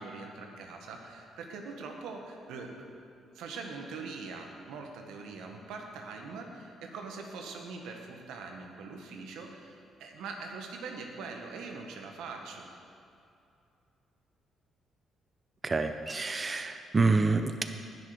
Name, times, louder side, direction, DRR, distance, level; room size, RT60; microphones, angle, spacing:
voice 1, 0.0-3.0 3.3-12.7, right 4 dB, 90° right, 2 dB, 1.6 m, -42 dB
voice 2, 15.6-17.6, right 3 dB, 30° right, 8 dB, 0.7 m, -27 dB
19.0 x 6.7 x 5.2 m, 2.6 s
cardioid pair, 90°, 0 cm